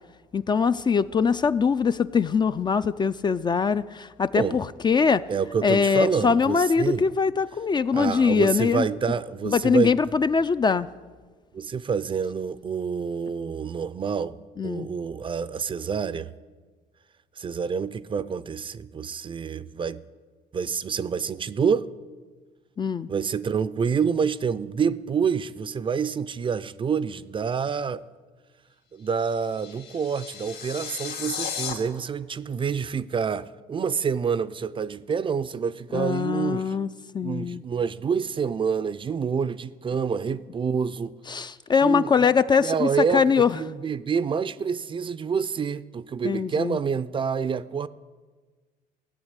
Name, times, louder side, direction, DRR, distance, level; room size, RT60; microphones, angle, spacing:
voice 1, 0.3-5.2 5.6-8.9 9.4-10.9 14.6-14.9 22.8-23.1 35.9-36.9 37.1-37.6 41.3-43.6 46.2-46.8, left 5 dB, 25° left, 0.4 m, -22 dB
voice 2, 5.3-7.1 7.9-10.0 11.5-14.4 14.6-16.3 17.4-20.0 20.5-21.9 23.1-28.0 28.9-36.7 37.2-41.1 41.8-42.3 42.6-47.9, right 6 dB, 30° right, 0.5 m, -27 dB
sound 1, 29.1-31.7, left 7 dB, 80° left, 2.6 m, -35 dB
16.0 x 7.2 x 9.8 m
cardioid pair, 110°, 17 cm